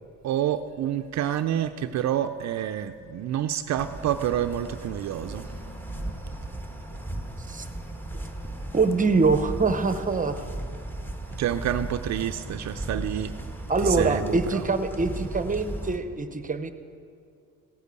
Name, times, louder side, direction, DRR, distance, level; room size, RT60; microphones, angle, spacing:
voice 1, 0.2-5.5 6.9-7.0 11.4-13.4 13.8-14.7, right 10 dB, 60° right, 8 dB, 0.5 m, -28 dB
sound 1, 3.8-16.0, right 1 dB, 5° left, 1.5 m, -36 dB
voice 2, 8.7-10.4 13.7-16.7, right 4 dB, 25° right, 10 dB, 0.9 m, -24 dB
16.0 x 8.2 x 8.2 m, 2.4 s
cardioid pair, 90°, 30 cm